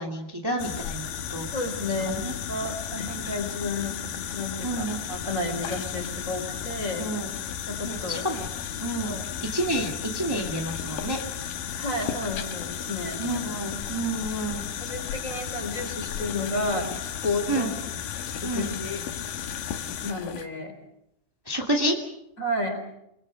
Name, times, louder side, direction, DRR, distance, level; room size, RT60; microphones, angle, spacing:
voice 1, 0.0-1.5 2.0-2.3 4.6-5.0 7.0-7.4 7.8-8.5 8.8-9.2 9.5-11.2 13.2-14.6 17.5-17.7 18.4-18.7 21.4-21.9, right 1 dB, 15° right, 1 dB, 0.9 m, -29 dB
sound 1, 0.6-20.5, left 9 dB, 65° left, 2.7 m, -34 dB
voice 2, 1.5-7.1 7.6-8.2 9.1-9.3 11.8-13.5 14.8-17.7 18.3-19.0 20.0-20.8 22.4-22.8, left 2 dB, 20° left, 6 dB, 3.8 m, -32 dB
28.5 x 22.0 x 6.5 m, 0.82 s
omnidirectional pair, 4.9 m